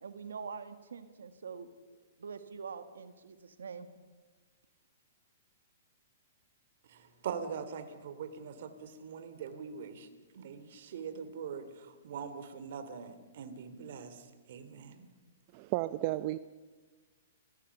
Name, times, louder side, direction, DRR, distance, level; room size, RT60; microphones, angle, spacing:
voice 1, 0.0-1.7 2.2-3.9, right 5 dB, 90° right, 10 dB, 1.7 m, -44 dB
voice 2, 6.9-10.1 10.3-15.1, right 6 dB, 60° right, 10 dB, 2.7 m, -42 dB
voice 3, 15.5-16.4, right 17 dB, 40° right, 13 dB, 0.6 m, -32 dB
30.0 x 16.0 x 7.0 m, 1.4 s
hypercardioid pair, 140°, 0 cm